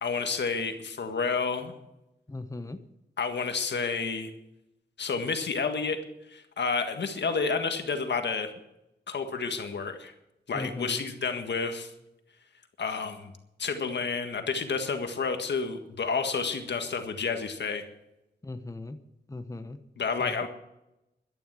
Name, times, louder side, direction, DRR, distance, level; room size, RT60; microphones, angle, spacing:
voice 1, 0.0-1.7 3.2-4.3 5.0-6.0 6.3-8.5 9.1-10.1 10.5-11.9 12.8-13.3 13.6-17.9 20.0-20.5, left 5 dB, 80° left, 6 dB, 1.7 m, -30 dB
voice 2, 2.3-2.8 10.5-11.0 18.4-19.0 19.3-19.8 20.2-20.3, left 2 dB, 20° left, 9 dB, 1.0 m, -38 dB
12.0 x 11.0 x 7.6 m, 0.89 s
wide cardioid pair, 90°, 18 cm